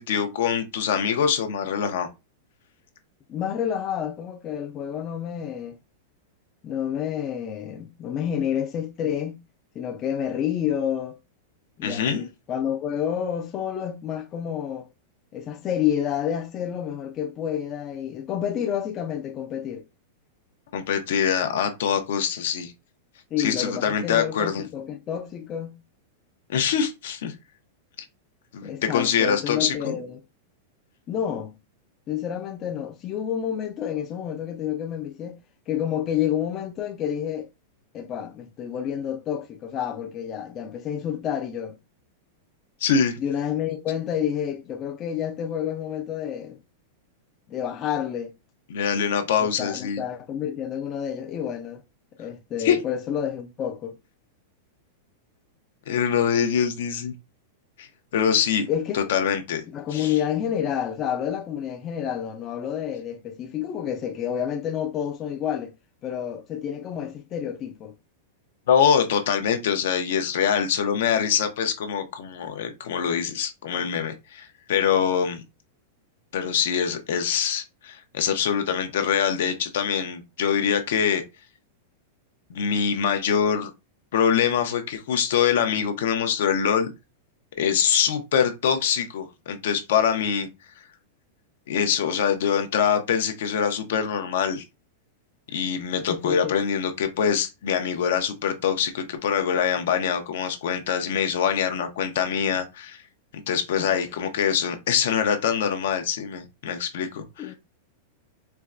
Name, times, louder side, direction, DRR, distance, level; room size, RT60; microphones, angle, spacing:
voice 1, 0.0-2.1 11.8-12.3 20.7-22.7 23.4-24.6 26.5-27.3 28.5-30.0 42.8-43.2 48.7-50.0 52.6-52.8 55.9-57.1 57.8-58.7 58.9-59.6 59.9-60.2 68.7-75.4 76.3-81.2 82.5-83.7 84.1-86.9 87.6-90.5 91.7-94.6 95.5-103.0 103.5-107.5, left 7 dB, 70° left, 0.7 m, -24 dB
voice 2, 3.3-5.8 6.6-9.4 9.8-11.2 11.8-14.9 15.3-19.8 23.3-25.8 28.6-30.2 31.1-31.5 32.1-35.4 35.7-37.5 37.9-41.8 43.2-46.6 47.5-48.3 49.4-51.8 52.2-54.0 58.7-59.0 59.7-65.7 66.0-67.9 96.1-96.5 103.8-104.0 107.4-107.5, left 9 dB, 25° left, 0.4 m, -29 dB
4.4 x 2.2 x 2.4 m
supercardioid pair, 160°, 0 cm